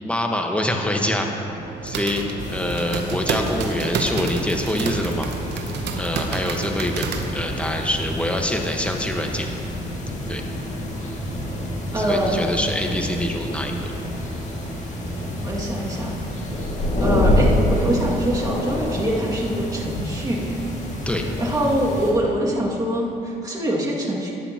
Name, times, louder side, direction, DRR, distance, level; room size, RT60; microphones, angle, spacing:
voice 1, 0.0-1.5 1.8-2.2 2.5-5.3 6.0-7.1 7.3-9.5 10.3-10.4 12.0-13.9 21.1-21.2, left 1 dB, 5° left, 2 dB, 1.3 m, -25 dB
sound 1, 0.9-18.8, right 2 dB, 45° right, 2.0 m, -38 dB
sound 2, 1.6-7.8, right 5 dB, 70° right, 0.9 m, -30 dB
sound 3, 2.4-22.1, left 1 dB, 40° left, 2.2 m, -28 dB
voice 2, 11.9-12.5 15.4-16.2 17.0-20.7 21.4-24.3, right 1 dB, 20° right, -4 dB, 2.2 m, -24 dB
13.0 x 9.8 x 2.9 m, 2.9 s
supercardioid pair, 65°, 18 cm